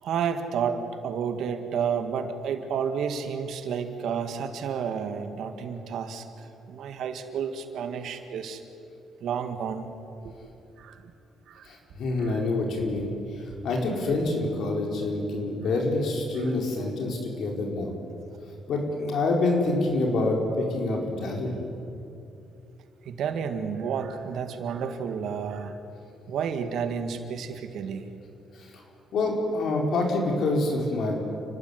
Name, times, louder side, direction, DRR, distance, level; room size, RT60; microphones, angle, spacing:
voice 1, 0.0-8.6 9.2-9.9 10.2-10.3 10.8-11.1 11.5-11.7 12.2-12.4 23.0-25.8 26.3-28.0, right 7 dB, 75° right, 8 dB, 1.9 m, -31 dB
voice 2, 11.6-18.0 18.7-21.6 28.5-28.8 29.1-31.1, left 2 dB, 70° left, 1 dB, 4.6 m, -27 dB
29.5 x 12.5 x 9.7 m, 2.7 s
cardioid pair, 90°, 0 cm